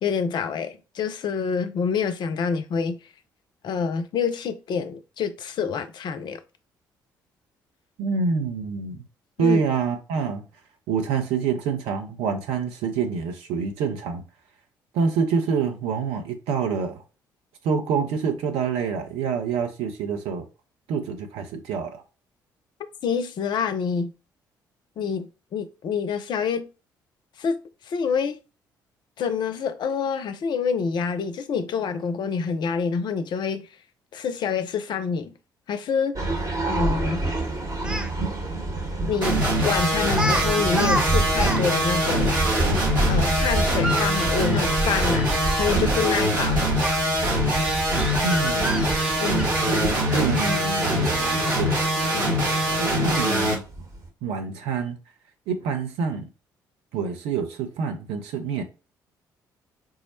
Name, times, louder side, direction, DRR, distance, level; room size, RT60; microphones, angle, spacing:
voice 1, 0.0-3.0 3.6-6.4 9.4-9.6 23.0-24.1 25.0-26.7 27.4-27.6 27.9-28.4 29.2-33.7 34.1-35.3 35.7-36.2 36.7-37.2 39.1-42.4 43.0-45.3 45.5-46.6 49.2-49.5 52.1-52.4, left 6 dB, 45° left, 0.4 m, -27 dB
voice 2, 8.0-9.0 9.4-10.4 10.9-14.2 14.9-17.0 17.6-20.4 20.9-22.0 48.2-48.9 49.7-51.8 52.8-53.6 54.2-55.0 55.5-56.3 56.9-58.6, right 5 dB, 65° right, 0.6 m, -26 dB
sound 1, 36.2-54.1, right 2 dB, 35° right, 1.0 m, -29 dB
Speech, 37.7-38.1 39.4-39.6 40.1-40.4 40.7-41.6 41.9-42.0 43.6-45.7 46.8-47.0 47.6-49.7 50.4-50.6 51.3-51.6, right 1 dB, 10° right, 0.5 m, -30 dB
sound 2, 39.2-53.5, equal, 85° right, 1.1 m, -23 dB
3.6 x 2.1 x 4.1 m
figure-of-eight pair, 45°, 10 cm